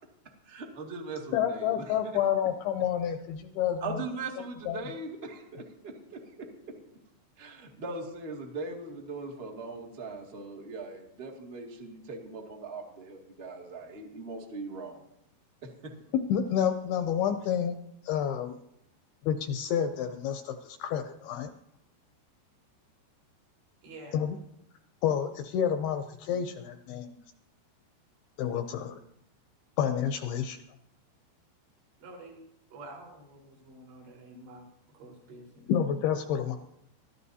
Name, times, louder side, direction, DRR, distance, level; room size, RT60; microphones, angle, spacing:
voice 1, 0.5-1.8 3.8-6.7 7.4-15.0 15.6-15.9, right 3 dB, 45° right, 0 dB, 0.8 m, -40 dB
voice 2, 1.3-4.0 4.7-4.8 16.3-17.8 18.0-18.6 19.2-21.5 24.1-24.4 25.0-27.2 28.4-29.0 29.8-30.6 35.7-36.6, left 9 dB, 80° left, 7 dB, 2.3 m, -29 dB
voice 3, 23.8-24.3 32.0-32.4 32.7-34.7 34.9-35.7, right 2 dB, 75° right, -2 dB, 6.5 m, -48 dB
23.0 x 15.0 x 2.8 m, 0.79 s
omnidirectional pair, 5.1 m